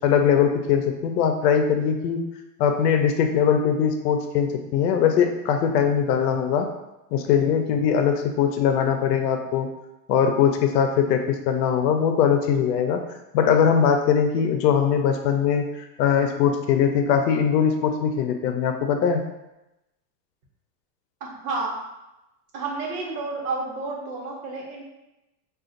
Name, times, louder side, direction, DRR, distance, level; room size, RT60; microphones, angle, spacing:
voice 1, 0.0-2.2 2.6-6.7 7.1-9.7 10.1-13.0 13.3-19.2, left 7 dB, 85° left, 5 dB, 0.6 m, -21 dB
voice 2, 21.2-21.7 22.5-24.8, right 3 dB, 65° right, -2 dB, 1.1 m, -30 dB
3.7 x 2.4 x 2.5 m, 0.94 s
supercardioid pair, 155°, 48 cm